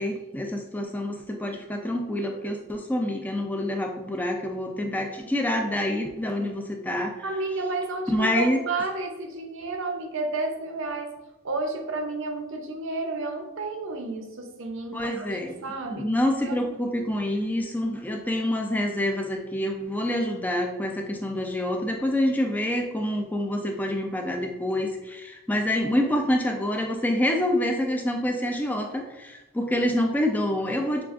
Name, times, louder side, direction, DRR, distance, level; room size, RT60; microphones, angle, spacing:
voice 1, 0.0-7.1 8.1-8.6 14.9-15.6 15.9-31.0, left 1 dB, 5° left, 2 dB, 0.4 m, -27 dB
voice 2, 7.2-16.1 16.4-16.7, right 3 dB, 55° right, 3 dB, 0.6 m, -31 dB
6.9 x 2.4 x 2.5 m, 1.0 s
head